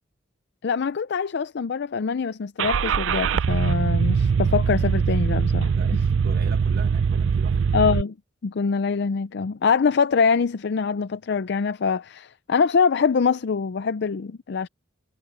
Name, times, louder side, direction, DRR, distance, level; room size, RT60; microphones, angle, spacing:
voice 1, 0.6-5.7 7.7-8.1 8.4-14.7, left 5 dB, 60° left, 0.5 m, -24 dB
Car / Engine starting, 2.6-8.0, right 6 dB, 85° right, 0.4 m, -22 dB
voice 2, 5.7-7.7, right 3 dB, 55° right, 1.3 m, -38 dB
head